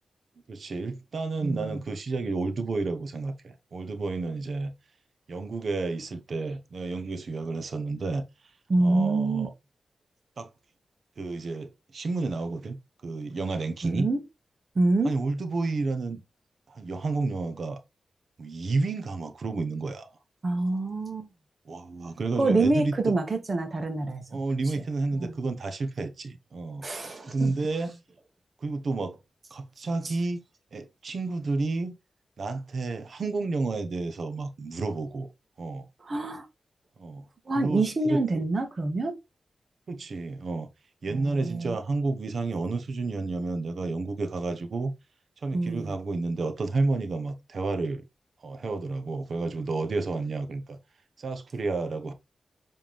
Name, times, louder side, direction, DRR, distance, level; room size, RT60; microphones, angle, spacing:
voice 1, 0.5-4.7 5.3-8.2 8.8-9.5 10.4-10.5 11.2-12.8 13.0-14.1 15.0-16.2 16.7-17.8 18.4-20.1 21.7-22.9 24.3-26.8 27.3-28.0 28.6-29.2 29.5-30.4 30.7-31.9 32.4-35.3 35.6-35.9 37.0-37.3 37.6-38.2 39.9-40.7 41.0-44.9 45.4-48.0 48.4-50.8 51.2-52.1, right 3 dB, 55° right, 1.0 m, -30 dB
voice 2, 1.4-1.8 8.7-9.5 13.8-14.2 14.7-15.1 20.4-21.3 22.3-24.4 24.8-24.9 25.1-25.5 26.8-27.5 30.0-30.1 36.0-36.4 37.5-39.1 41.1-41.8 45.5-45.9, right 2 dB, 40° right, 1.6 m, -26 dB
7.8 x 3.5 x 3.4 m
wide cardioid pair, 125°, 0 cm